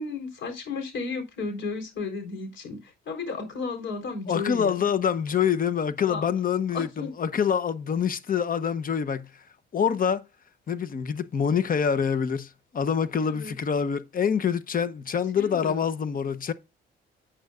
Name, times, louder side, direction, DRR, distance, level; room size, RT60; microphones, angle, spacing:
voice 1, 0.0-4.8 6.1-6.2 6.7-7.1 13.3-13.5 15.4-15.8, left 4 dB, 70° left, 4.0 m, -33 dB
voice 2, 4.3-9.3 9.7-10.3 10.7-16.5, left 7 dB, 45° left, 0.9 m, -26 dB
10.5 x 9.1 x 2.4 m
cardioid pair, 90°, 20 cm